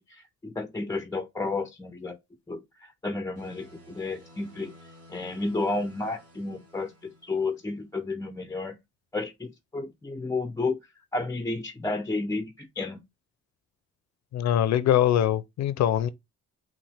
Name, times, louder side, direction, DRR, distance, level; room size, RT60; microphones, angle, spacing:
voice 1, 0.1-2.2 2.5-2.6 3.0-4.7 5.1-8.8 9.1-10.8 11.1-13.0, left 3 dB, 10° left, 0.4 m, -31 dB
sound 1, 3.3-7.8, equal, 55° right, 1.5 m, -53 dB
voice 2, 14.3-16.1, left 11 dB, 65° left, 0.5 m, -23 dB
5.6 x 2.5 x 3.3 m
cardioid pair, 90°, 30 cm